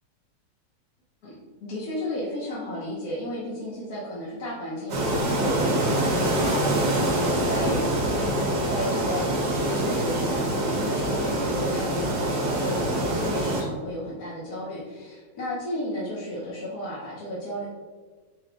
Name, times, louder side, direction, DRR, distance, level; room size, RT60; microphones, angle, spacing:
voice 1, 1.2-17.7, left 1 dB, 60° left, -7 dB, 1.2 m, -33 dB
sound 1, 4.9-13.6, right 1 dB, 65° right, 1.3 m, -25 dB
4.3 x 2.2 x 3.8 m, 1.4 s
omnidirectional pair, 1.9 m